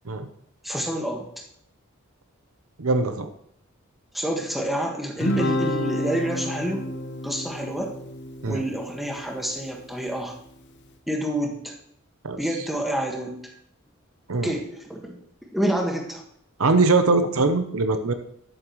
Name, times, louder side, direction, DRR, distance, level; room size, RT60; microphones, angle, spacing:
voice 1, 0.6-1.3 4.1-6.9 7.2-7.9 8.5-10.3 11.1-11.7 12.4-13.4 14.4-15.2 15.5-16.2, right 1 dB, ahead, 0 dB, 1.6 m, -28 dB
voice 2, 2.8-3.3 8.4-8.6 12.2-12.4 14.3-14.5 16.6-18.1, right 3 dB, 75° right, 8 dB, 0.8 m, -21 dB
Guitar, 5.2-9.8, left 1 dB, 55° left, 0.9 m, -30 dB
10.5 x 8.7 x 3.1 m, 0.69 s
head